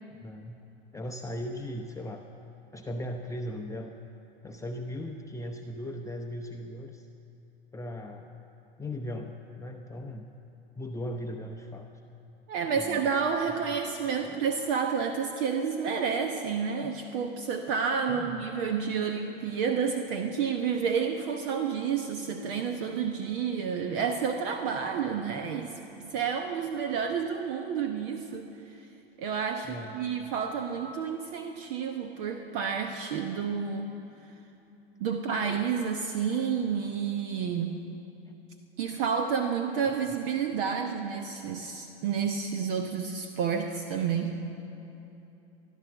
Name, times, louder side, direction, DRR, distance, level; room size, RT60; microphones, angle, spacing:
voice 1, 0.1-0.6 0.9-2.3 2.7-4.0 4.4-7.1 7.7-8.4 8.8-10.2 10.7-11.9 12.8-13.1 14.2-14.4 18.1-18.5 29.6-30.0, left 1 dB, 10° left, 2 dB, 0.6 m, -38 dB
voice 2, 12.5-28.5 29.2-33.9 35.0-37.8 38.8-44.4, right 6 dB, 60° right, 5 dB, 1.0 m, -30 dB
15.0 x 11.5 x 7.1 m, 3.0 s
hypercardioid pair, 95°, 32 cm